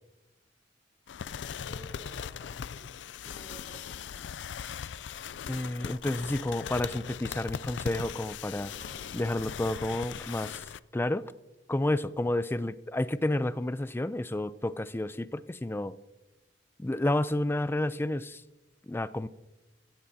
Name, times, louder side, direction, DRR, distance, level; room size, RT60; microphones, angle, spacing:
sound 1, 1.1-10.8, left 7 dB, 75° left, 0.4 m, -39 dB
voice 1, 1.5-4.2, right 2 dB, 30° left, 1.7 m, -54 dB
voice 2, 5.5-8.7 9.1-10.6 10.9-11.3 11.7-16.0 16.8-18.4 18.9-19.3, left 1 dB, 15° left, 0.4 m, -30 dB
sound 2, 8.8-10.6, right 1 dB, 40° right, 1.2 m, -57 dB
16.0 x 15.0 x 2.8 m
head